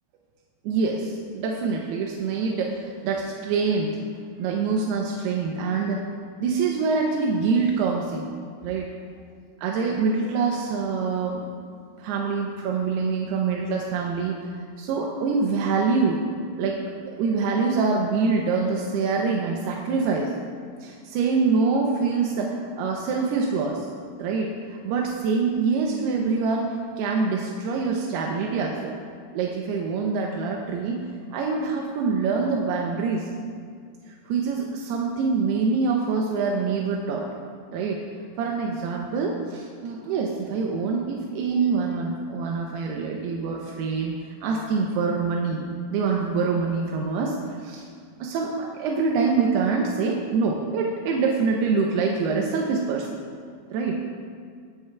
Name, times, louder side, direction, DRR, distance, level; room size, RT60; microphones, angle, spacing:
voice 1, 0.6-4.0 4.4-6.0 6.4-8.3 8.6-8.9 9.6-11.5 12.0-14.4 14.8-16.2 16.6-16.8 17.2-20.3 20.8-23.9 24.2-28.9 29.3-31.0 31.3-33.3 34.1-37.3 37.7-38.0 38.4-44.1 44.4-45.6 45.9-47.4 47.6-47.9 48.2-53.1 53.7-54.0, right 4 dB, 80° right, 0 dB, 2.5 m, -25 dB
19.5 x 7.7 x 2.4 m, 2.1 s
omnidirectional pair, 5.2 m